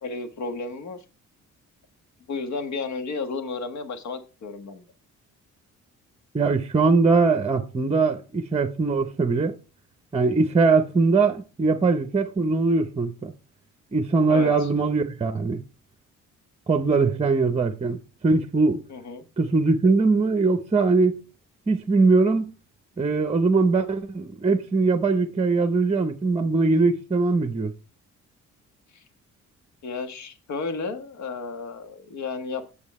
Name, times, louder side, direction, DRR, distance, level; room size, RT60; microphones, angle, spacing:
voice 1, 0.0-1.0 2.3-4.9 14.3-14.7 18.9-19.2 28.9-29.0 29.8-32.6, left 4 dB, 65° left, 1.4 m, -33 dB
voice 2, 6.3-9.5 10.1-13.3 13.9-15.6 16.7-18.0 18.2-18.8 19.4-21.2 21.7-22.5 23.0-27.7, right 3 dB, 20° right, 0.8 m, -21 dB
7.1 x 7.1 x 4.2 m
cardioid pair, 90°, 30 cm